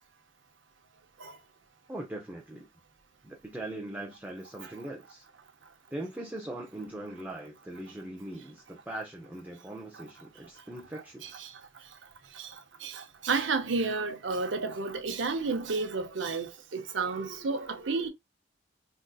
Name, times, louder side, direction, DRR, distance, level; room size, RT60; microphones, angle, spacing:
voice 1, 1.9-2.7 3.2-5.2 5.9-11.5, right 1 dB, 10° right, 0.6 m, -41 dB
voice 2, 12.8-18.1, right 4 dB, 85° right, 0.7 m, -31 dB
3.6 x 2.6 x 2.3 m
head